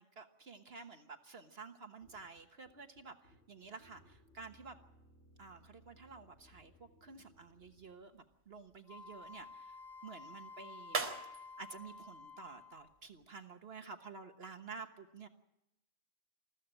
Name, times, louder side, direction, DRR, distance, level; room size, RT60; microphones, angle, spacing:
voice 1, 0.0-4.8 5.4-9.8 10.0-11.1 11.6-15.3, right 4 dB, 55° right, 7 dB, 1.5 m, -51 dB
sound 1, 2.0-7.9, equal, 70° left, 6.9 m, -65 dB
sound 2, 7.3-13.3, right 4 dB, 40° right, 4.4 m, -46 dB
Wind instrument woodwind instrument, 8.9-13.0, left 4 dB, 35° left, 1.7 m, -52 dB
21.5 x 15.0 x 8.9 m, 0.90 s
omnidirectional pair, 1.2 m